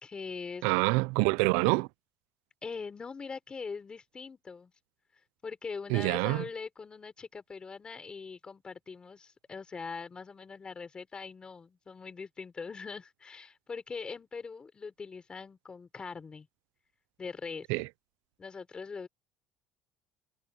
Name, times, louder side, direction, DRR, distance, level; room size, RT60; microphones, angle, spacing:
voice 1, 0.0-0.6 2.6-4.7 5.4-16.5 17.2-17.7 18.4-19.1, left 5 dB, 20° left, 3.9 m, -42 dB
voice 2, 0.6-1.9 5.9-6.4 17.7-17.9, right 24 dB, 85° right, 0.5 m, -26 dB
cardioid pair, 140°, 4 cm